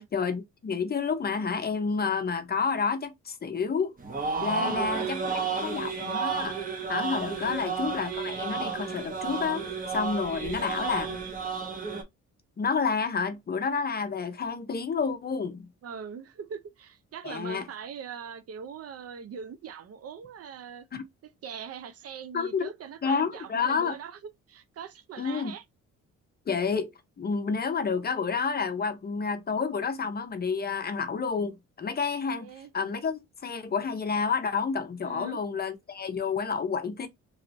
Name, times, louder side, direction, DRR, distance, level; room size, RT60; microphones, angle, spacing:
voice 1, 0.1-3.9 4.4-6.6 6.9-9.6 9.9-11.2 12.6-15.7 17.2-17.6 20.9-21.0 22.3-22.7 23.0-23.9 25.2-25.5 26.5-26.9 27.2-32.5 32.7-37.1, left 5 dB, 30° left, 0.6 m, -29 dB
sound 1, 4.0-12.0, right 5 dB, 30° right, 0.9 m, -32 dB
voice 2, 4.5-5.1 7.5-7.6 15.8-20.9 21.2-24.2 24.5-25.6 32.4-32.7 35.0-35.4, right 7 dB, 55° right, 0.6 m, -41 dB
3.1 x 2.9 x 2.6 m
cardioid pair, 90°, 30 cm